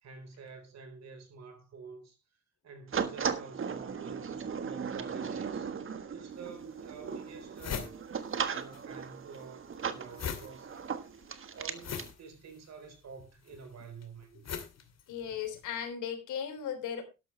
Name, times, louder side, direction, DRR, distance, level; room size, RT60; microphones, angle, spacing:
voice 1, 0.0-2.2 2.6-5.7 6.1-8.1 8.4-11.0 11.5-14.5, right 5 dB, 60° right, 4.3 m, -49 dB
sound 1, 2.9-12.1, right 6 dB, 45° right, 1.5 m, -37 dB
sound 2, 6.3-6.4 7.0-7.1 7.3-8.8 9.1-15.7, left 7 dB, 60° left, 2.6 m, -41 dB
voice 2, 15.1-17.0, left 8 dB, 80° left, 3.6 m, -36 dB
12.5 x 12.0 x 3.2 m
cardioid pair, 90°, 30 cm